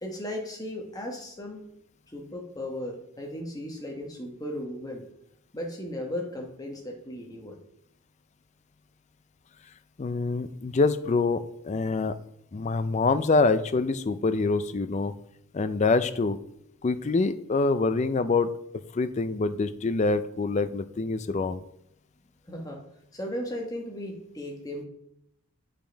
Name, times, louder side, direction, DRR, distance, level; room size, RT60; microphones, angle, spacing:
voice 1, 0.0-1.6 2.1-5.0 5.5-7.6 22.5-22.8 23.1-24.9, left 1 dB, 15° left, 1 dB, 1.1 m, -36 dB
voice 2, 10.0-12.2 12.5-15.1 15.5-16.4 16.8-18.5 18.9-21.6, left 3 dB, 30° left, 12 dB, 0.3 m, -25 dB
7.4 x 5.2 x 4.5 m, 0.75 s
head